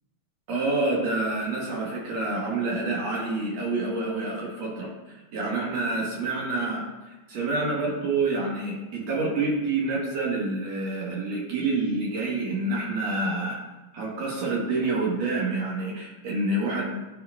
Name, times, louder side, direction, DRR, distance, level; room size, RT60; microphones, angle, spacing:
voice 1, 0.5-6.8 7.3-13.6 13.9-17.0, right 2 dB, 60° right, -4 dB, 2.2 m, -27 dB
11.0 x 4.6 x 2.3 m, 1.1 s
omnidirectional pair, 3.6 m